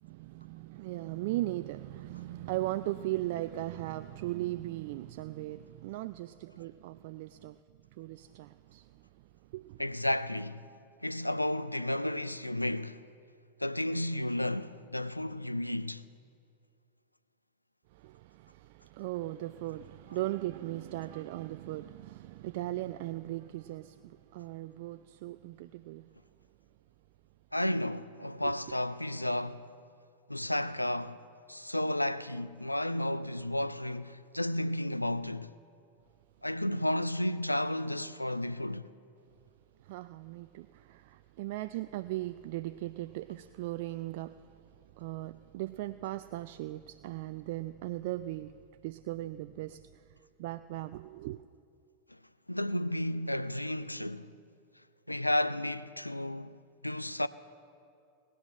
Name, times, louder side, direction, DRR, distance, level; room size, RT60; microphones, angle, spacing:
voice 1, 0.0-7.6 7.9-9.9 17.9-26.1 28.4-28.5 39.8-48.6 48.8-51.4, right 16 dB, 50° right, 0.3 m, -38 dB
voice 2, 9.8-10.7 11.0-13.0 13.6-16.0 27.5-29.7 30.3-31.2 31.5-35.5 36.4-38.9 52.5-54.3 55.1-57.3, left 1 dB, 85° left, 0.4 m, -32 dB
18.5 x 10.0 x 7.5 m
figure-of-eight pair, 90°, 0 cm